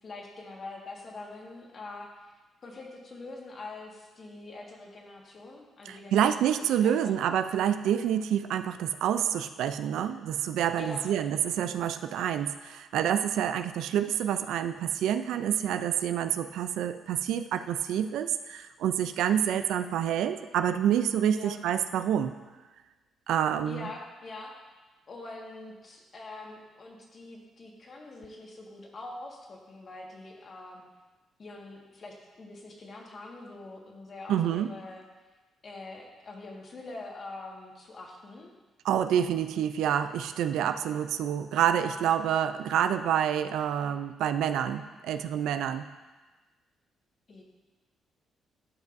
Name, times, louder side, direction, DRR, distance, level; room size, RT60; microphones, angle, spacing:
voice 1, 0.0-2.1 2.6-7.2 10.8-11.1 21.3-21.6 23.7-24.5 25.1-30.8 31.4-35.0 35.6-38.5 47.3-47.4, left 2 dB, 45° left, -1 dB, 1.6 m, -44 dB
voice 2, 5.9-22.3 23.3-23.9 34.3-34.7 38.8-45.9, right 9 dB, 85° right, 10 dB, 0.4 m, -28 dB
12.5 x 5.3 x 2.6 m, 1.2 s
cardioid pair, 90°, 0 cm